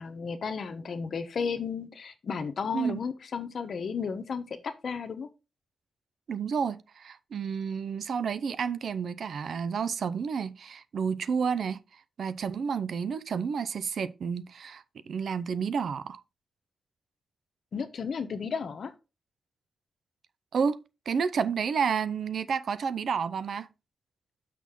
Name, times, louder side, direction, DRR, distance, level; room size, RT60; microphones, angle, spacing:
voice 1, 0.0-5.3 17.7-18.9, left 6 dB, 60° left, 1.0 m, -33 dB
voice 2, 6.3-11.8 12.2-16.2 20.5-23.7, right 6 dB, 70° right, 0.5 m, -30 dB
6.2 x 5.8 x 3.7 m
cardioid pair, 90°, 0 cm